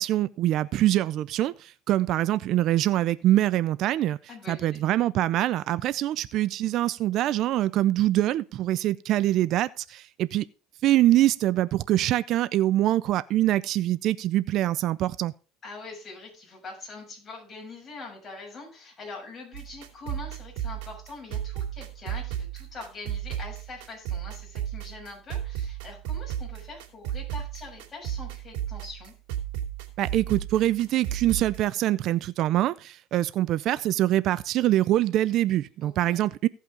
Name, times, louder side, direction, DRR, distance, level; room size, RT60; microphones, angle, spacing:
voice 1, 0.0-4.2 4.5-10.5 10.8-15.3 30.0-36.5, right 14 dB, 55° right, 0.4 m, -24 dB
voice 2, 4.3-4.8 15.6-29.1 35.8-36.2, left 3 dB, 30° left, 6.4 m, -43 dB
sound 1, 19.5-31.6, right 11 dB, 80° right, 2.9 m, -34 dB
16.5 x 5.6 x 3.8 m
supercardioid pair, 120°, 0 cm